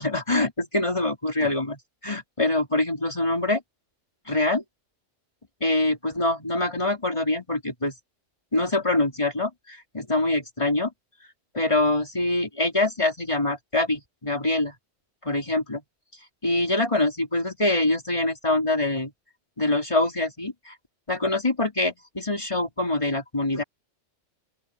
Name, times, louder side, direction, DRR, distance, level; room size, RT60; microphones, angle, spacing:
voice 1, 0.0-3.6 4.3-4.6 5.6-7.9 8.5-10.9 11.5-14.8 15.2-15.8 16.4-19.1 19.6-20.8 21.1-23.6, left 2 dB, 25° left, 3.9 m, -24 dB
open air
omnidirectional pair, 1.3 m